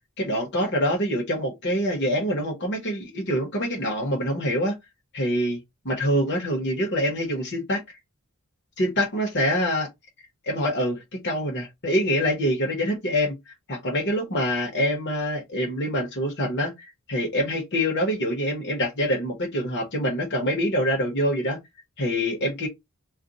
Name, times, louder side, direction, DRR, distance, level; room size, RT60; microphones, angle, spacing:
voice 1, 0.2-4.7 5.1-8.0 8.8-9.9 10.4-13.4 13.7-21.6 22.0-22.7, equal, 50° left, 1.1 m, -25 dB
2.5 x 2.2 x 3.9 m
head